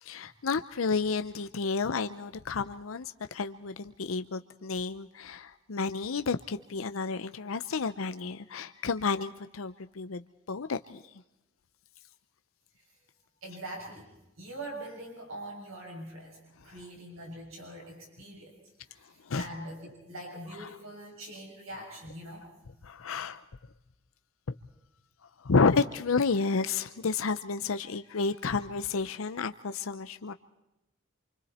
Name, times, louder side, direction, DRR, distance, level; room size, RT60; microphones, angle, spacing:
voice 1, 0.0-11.0 19.2-19.4 22.8-23.4 25.4-30.3, left 4 dB, 90° left, 10 dB, 0.7 m, -31 dB
voice 2, 13.4-14.1 14.4-16.4 16.6-18.5 18.9-22.5, right 1 dB, 90° right, 0 dB, 7.0 m, -43 dB
28.0 x 25.0 x 4.3 m, 0.92 s
head